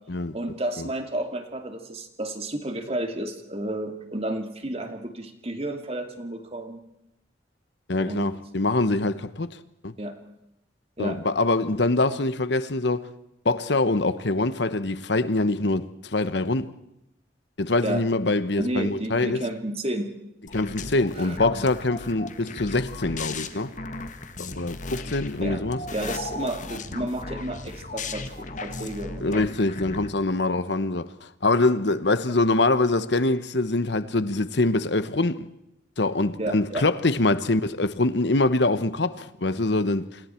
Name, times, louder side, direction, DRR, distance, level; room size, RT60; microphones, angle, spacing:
voice 1, 0.3-6.8 8.1-8.3 10.0-10.3 11.0-11.2 17.8-18.0 18.6-20.1 21.1-21.4 25.4-25.6 25.9-29.6 36.4-36.8, right 1 dB, 30° right, 2.4 m, -31 dB
voice 2, 7.9-9.9 11.0-13.1 13.4-16.7 17.6-19.4 20.5-23.7 24.4-25.8 29.2-35.5 36.0-40.2, left 2 dB, 65° left, 1.1 m, -24 dB
sound 1, 20.5-30.1, left 3 dB, 40° left, 1.6 m, -36 dB
29.0 x 26.0 x 4.5 m
head